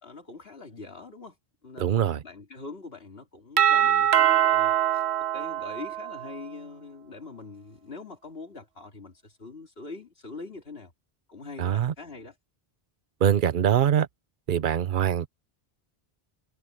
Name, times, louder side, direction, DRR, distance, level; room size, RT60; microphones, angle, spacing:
voice 1, 0.0-1.4 1.6-5.0 5.3-10.9 11.3-12.3, left 3 dB, 70° left, 3.0 m, -43 dB
voice 2, 1.8-2.2 11.6-11.9 13.2-14.1 14.5-15.3, right 9 dB, 55° right, 0.9 m, -23 dB
Doorbell, 3.6-6.4, right 10 dB, 90° right, 1.0 m, -23 dB
omnidirectional pair, 1.1 m